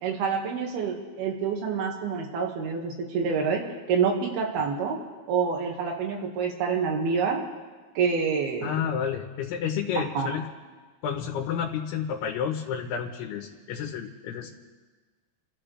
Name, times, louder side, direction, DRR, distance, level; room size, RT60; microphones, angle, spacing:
voice 1, 0.0-5.0 5.3-7.4 8.0-8.8 10.0-10.3, right 6 dB, 75° right, 0 dB, 3.8 m, -27 dB
voice 2, 8.6-10.5 11.0-14.5, left 8 dB, 85° left, 0 dB, 3.1 m, -30 dB
29.0 x 14.0 x 3.4 m, 1.4 s
omnidirectional pair, 4.5 m